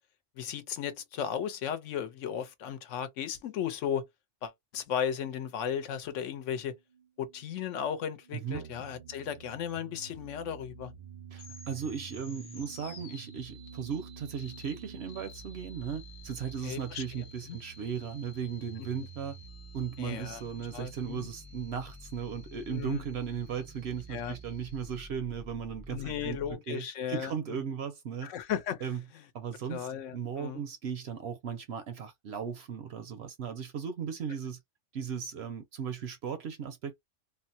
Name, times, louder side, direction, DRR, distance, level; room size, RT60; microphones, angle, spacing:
voice 1, 0.4-4.0 4.4-6.7 7.2-10.9 16.6-17.0 17.5-17.6 20.0-20.4 20.7-21.3 22.7-23.0 24.1-24.4 25.9-27.7 28.2-28.8 29.7-30.6, left 9 dB, 75° left, 1.0 m, -35 dB
sound 1, 6.0-15.2, right 7 dB, 30° left, 0.8 m, -55 dB
voice 2, 8.3-8.6 11.3-19.4 19.7-26.4 26.7-28.3 28.8-29.0 29.3-34.6 34.9-37.0, right 7 dB, 65° right, 0.8 m, -37 dB
sound 2, 8.5-26.5, right 3 dB, 40° right, 0.4 m, -49 dB
sound 3, 11.3-25.0, left 3 dB, 45° left, 1.1 m, -55 dB
3.3 x 2.1 x 2.6 m
omnidirectional pair, 1.3 m